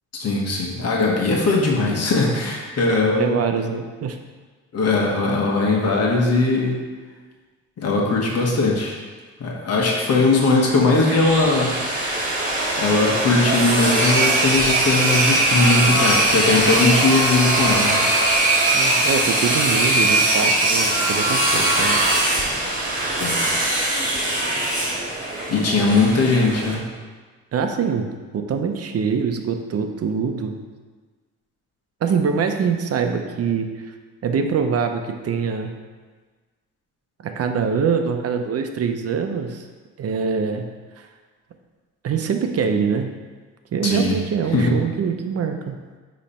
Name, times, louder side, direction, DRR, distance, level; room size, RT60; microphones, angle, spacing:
voice 1, 0.2-3.4 4.7-6.8 7.8-9.0 9.4-11.8 12.8-18.0 23.2-23.4 25.5-26.8 43.8-44.2 44.5-44.7, left 3 dB, 55° left, -1 dB, 1.3 m, -19 dB
voice 2, 2.9-4.2 18.7-22.0 27.5-30.6 32.0-33.7 34.2-35.7 37.2-39.6 40.0-40.7 41.0-41.1 42.0-43.1 43.7-45.8, right 6 dB, 55° right, 6 dB, 0.7 m, -24 dB
sound 1, 10.8-26.7, right 2 dB, 25° right, 2.0 m, -20 dB
9.6 x 3.2 x 4.3 m, 1.4 s
cardioid pair, 90°, 30 cm